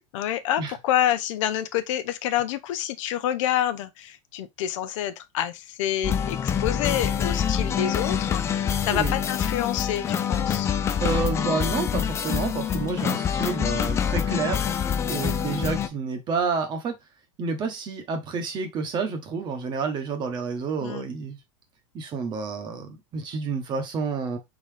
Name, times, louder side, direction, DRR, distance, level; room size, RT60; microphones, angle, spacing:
voice 1, 0.1-10.7 20.8-21.1, left 11 dB, 75° left, 0.7 m, -28 dB
sound 1, 6.0-15.9, left 8 dB, 15° left, 0.3 m, -26 dB
voice 2, 11.0-14.6 15.1-16.9 17.4-21.4 21.9-24.4, right 5 dB, 30° right, 1.1 m, -29 dB
4.0 x 3.9 x 3.2 m
supercardioid pair, 155°, 16 cm